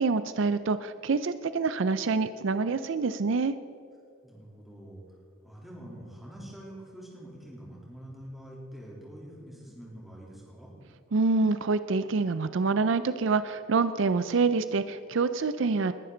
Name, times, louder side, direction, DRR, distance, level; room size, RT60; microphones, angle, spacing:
voice 1, 0.0-3.6 11.1-15.9, right 4 dB, 70° right, 12 dB, 0.5 m, -26 dB
voice 2, 4.2-5.2 5.4-10.7, equal, ahead, -5 dB, 3.3 m, -45 dB
20.5 x 11.0 x 3.9 m, 2.5 s
head